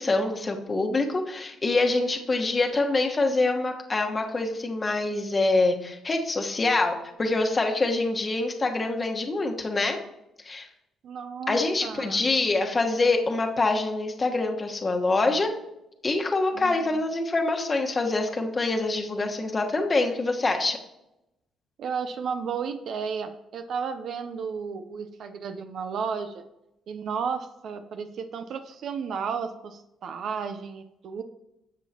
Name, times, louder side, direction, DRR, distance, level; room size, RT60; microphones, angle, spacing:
voice 1, 0.0-10.0 10.4-10.7 11.5-15.5 16.0-20.8, left 2 dB, 30° left, 3 dB, 1.2 m, -25 dB
voice 2, 11.0-12.3 16.5-17.0 21.8-26.4 26.9-31.2, right 6 dB, 65° right, 8 dB, 0.6 m, -33 dB
13.0 x 7.1 x 2.9 m, 0.89 s
cardioid pair, 90°, 0 cm